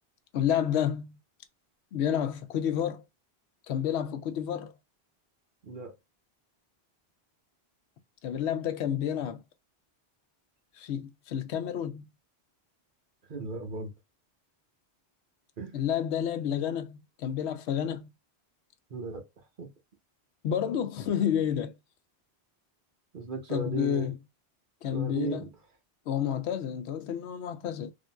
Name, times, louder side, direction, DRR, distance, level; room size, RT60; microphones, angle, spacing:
voice 1, 0.3-1.1 1.9-3.0 3.7-4.7 8.2-9.4 10.8-12.0 15.7-18.1 20.4-21.7 23.5-24.1 24.8-25.4 26.1-27.9, left 9 dB, 90° left, 0.9 m, -30 dB
voice 2, 5.6-6.0 13.3-13.9 15.6-15.8 18.9-19.7 23.1-24.1 24.9-25.5, right 3 dB, 55° right, 0.9 m, -36 dB
3.4 x 2.6 x 2.2 m
omnidirectional pair, 1.1 m